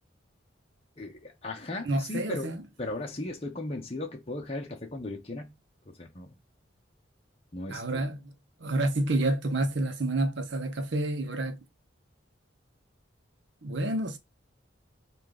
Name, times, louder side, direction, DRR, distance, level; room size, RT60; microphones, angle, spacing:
voice 1, 1.0-2.5 2.8-5.5 5.9-6.3 7.5-8.0, left 2 dB, 30° left, 0.8 m, -37 dB
voice 2, 1.8-2.6 7.7-8.3 8.6-11.6 13.6-14.2, right 2 dB, 65° right, 0.8 m, -29 dB
5.0 x 2.5 x 3.7 m
head